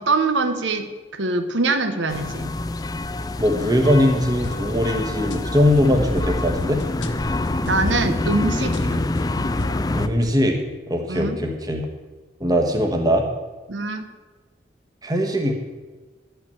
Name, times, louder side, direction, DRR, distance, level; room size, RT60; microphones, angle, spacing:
voice 1, 0.0-2.5 7.7-9.1 11.1-11.4 13.7-14.1, right 3 dB, 85° right, 8 dB, 1.1 m, -23 dB
sound 1, 2.1-10.1, left 2 dB, 20° left, 0.4 m, -26 dB
voice 2, 3.4-6.8 9.9-10.6 10.9-11.8 12.4-13.2 15.0-15.5, equal, 20° right, 3 dB, 1.3 m, -20 dB
sound 2, 4.1-10.3, left 2 dB, 80° left, 1.0 m, -36 dB
12.0 x 5.8 x 8.4 m, 1.3 s
head